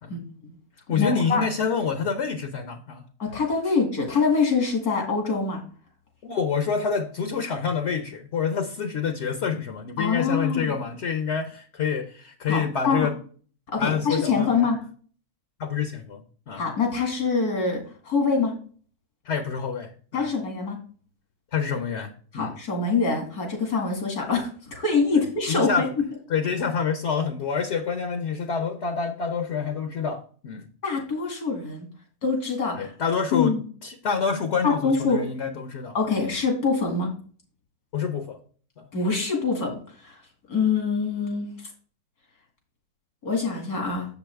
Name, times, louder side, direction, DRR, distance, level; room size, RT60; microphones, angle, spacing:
voice 1, 0.1-0.6 0.9-1.5 3.2-5.6 10.0-10.7 12.5-13.1 13.7-14.8 16.5-18.5 20.1-20.8 22.3-25.9 30.8-31.9 32.2-32.9 33.3-33.6 34.6-35.2 35.9-37.1 38.9-40.1 40.5-41.5 43.2-44.1, left 4 dB, 90° left, 2 dB, 2.6 m, -25 dB
voice 2, 0.9-3.1 6.2-13.2 13.8-14.7 15.6-16.6 19.2-20.3 21.5-22.5 25.1-25.9 26.3-30.7 32.7-36.0 37.9-38.4 38.8-38.9, left 6 dB, 55° left, 6 dB, 1.0 m, -27 dB
7.2 x 7.0 x 3.4 m, 0.43 s
omnidirectional pair, 1.6 m